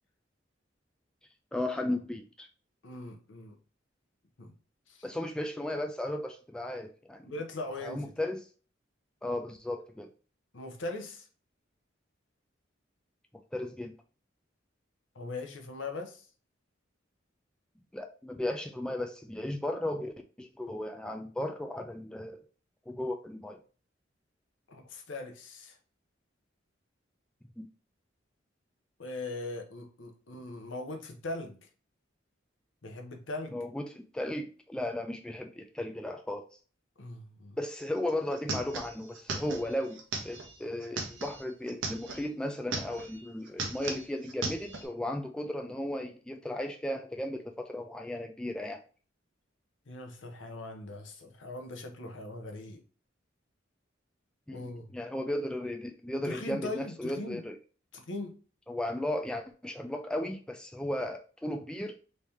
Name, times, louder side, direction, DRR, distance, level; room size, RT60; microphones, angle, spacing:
voice 1, 1.5-2.5 5.0-7.3 7.8-8.4 9.2-10.1 13.5-13.9 17.9-22.4 22.9-23.6 27.6-27.7 33.5-36.4 37.6-48.8 54.5-57.6 58.7-62.0, left 1 dB, 5° left, 4 dB, 0.3 m, -35 dB
voice 2, 2.8-3.6 4.4-4.5 4.9-5.0 7.2-8.1 10.5-11.3 15.1-16.3 24.7-25.8 29.0-31.7 32.8-33.6 37.0-37.6 49.9-52.8 54.5-54.9 56.2-57.4 57.9-58.4, left 2 dB, 70° left, 4 dB, 0.8 m, -40 dB
sound 1, 37.8-37.9 38.1-42.3 42.6-43.2 43.5-44.9, right 3 dB, 75° right, 0.8 m, -37 dB
3.2 x 2.8 x 3.4 m, 0.39 s
head